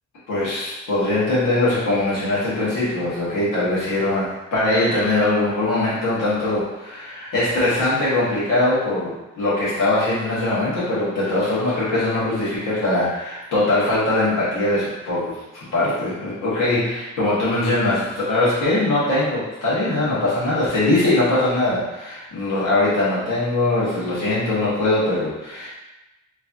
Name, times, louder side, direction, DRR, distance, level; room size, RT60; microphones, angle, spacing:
voice 1, 0.3-25.7, left 2 dB, 75° left, -9 dB, 1.5 m, -21 dB
3.5 x 3.2 x 2.6 m, 1.0 s
cardioid pair, 90°, 32 cm